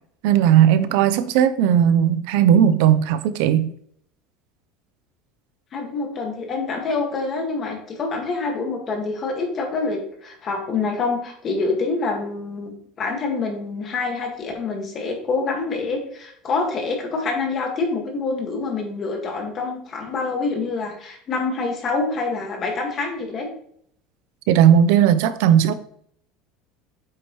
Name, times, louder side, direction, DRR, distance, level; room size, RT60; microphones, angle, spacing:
voice 1, 0.2-3.7 24.5-25.7, right 9 dB, 65° right, 0.5 m, -16 dB
voice 2, 5.7-12.7 13.0-23.5, left 3 dB, 25° left, 1.7 m, -26 dB
8.0 x 6.0 x 3.1 m
cardioid pair, 165°, 0 cm